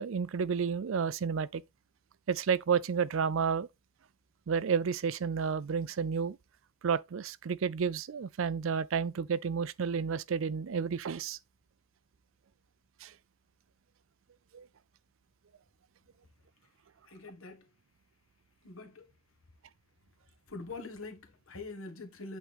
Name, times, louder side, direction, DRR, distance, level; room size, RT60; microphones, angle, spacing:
voice 1, 0.0-1.6 2.3-3.7 4.5-6.4 6.8-11.4 13.0-13.1 14.5-14.7, right 6 dB, 70° right, 0.4 m, -31 dB
voice 2, 17.0-17.7 18.6-19.1 20.5-22.4, left 3 dB, 80° left, 1.5 m, -44 dB
8.4 x 3.6 x 3.5 m
head